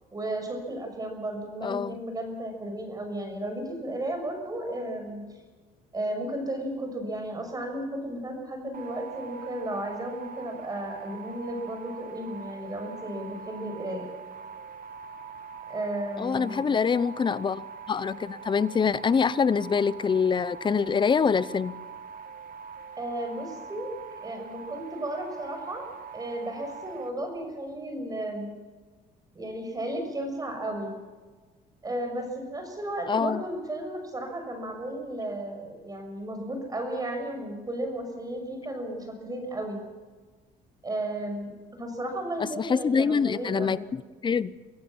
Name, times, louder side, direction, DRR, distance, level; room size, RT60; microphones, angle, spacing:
voice 1, 0.1-5.2 5.9-14.1 15.7-16.7 23.0-23.9 24.2-25.9 26.1-28.5 29.3-30.9 31.8-39.8 40.8-43.8, right 1 dB, 20° right, 5 dB, 6.4 m, -34 dB
voice 2, 1.6-2.0 16.2-17.6 17.9-21.7 33.1-33.4 42.6-44.5, left 6 dB, 30° left, 17 dB, 0.8 m, -25 dB
sound 1, 8.7-27.1, right 6 dB, 55° right, 1.9 m, -43 dB
25.5 x 15.0 x 7.2 m, 1.3 s
cardioid pair, 110°, 17 cm